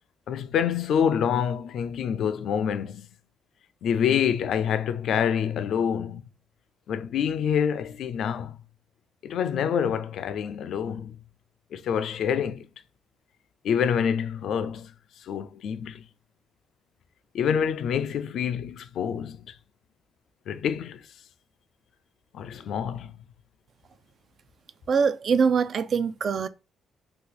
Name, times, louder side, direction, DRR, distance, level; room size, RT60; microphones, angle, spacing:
voice 1, 0.3-3.1 3.8-6.2 6.9-8.6 9.2-11.2 11.7-12.6 13.6-14.9 15.3-16.0 17.3-19.4 20.5-21.0 22.3-23.1, left 8 dB, 70° left, 0.3 m, -26 dB
voice 2, 24.9-26.5, right 6 dB, 55° right, 0.3 m, -23 dB
2.7 x 2.4 x 3.7 m
cardioid pair, 90°, 0 cm